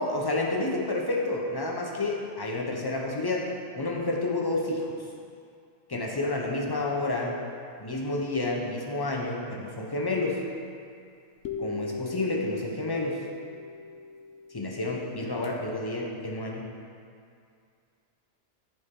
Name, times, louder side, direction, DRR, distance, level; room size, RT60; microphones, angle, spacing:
voice 1, 0.0-3.5 3.8-4.9 5.9-7.4 7.8-10.4 11.6-13.2 14.5-16.7, left 2 dB, 25° left, -2 dB, 0.6 m, -30 dB
sound 1, 11.4-15.5, left 3 dB, 85° left, 0.9 m, -39 dB
9.5 x 4.2 x 3.7 m, 2.3 s
omnidirectional pair, 1.2 m